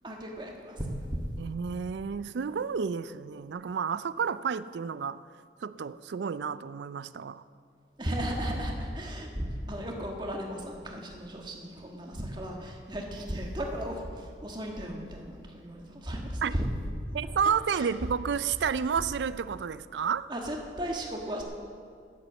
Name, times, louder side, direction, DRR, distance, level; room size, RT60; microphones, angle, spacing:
voice 1, 0.0-1.3 8.0-16.7 17.7-17.9 20.3-21.4, equal, 25° right, 1.5 m, -35 dB
voice 2, 1.4-5.2 5.6-7.4 16.4-16.5 17.1-20.3, right 6 dB, 75° right, 0.4 m, -31 dB
10.0 x 9.9 x 7.4 m
head